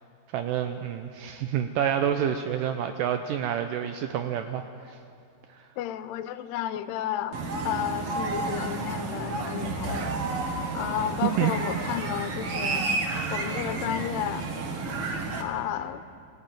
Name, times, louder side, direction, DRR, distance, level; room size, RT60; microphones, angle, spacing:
voice 1, 0.3-5.0 5.5-5.7 11.2-11.5, right 9 dB, 90° right, 7 dB, 1.9 m, -28 dB
voice 2, 5.8-7.4 7.6-10.3 10.7-12.8 13.3-14.5 15.4-16.0, left 11 dB, 90° left, 12 dB, 2.8 m, -32 dB
sound 1, 7.3-15.4, right 3 dB, 50° right, 1.9 m, -31 dB
19.0 x 15.0 x 9.1 m, 2.4 s
omnidirectional pair, 4.6 m